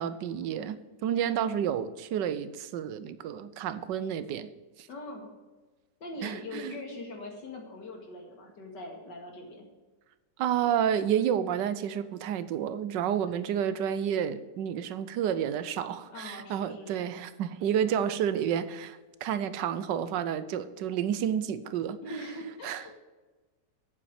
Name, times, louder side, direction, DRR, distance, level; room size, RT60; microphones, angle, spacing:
voice 1, 0.0-4.5 4.8-4.9 6.2-6.8 10.4-22.0 22.6-22.8, right 9 dB, 80° right, 1.3 m, -30 dB
voice 2, 4.9-5.3 6.0-9.7 16.1-17.1 22.0-23.0, left 1 dB, 80° left, 2.7 m, -42 dB
8.6 x 7.2 x 6.6 m
omnidirectional pair, 1.9 m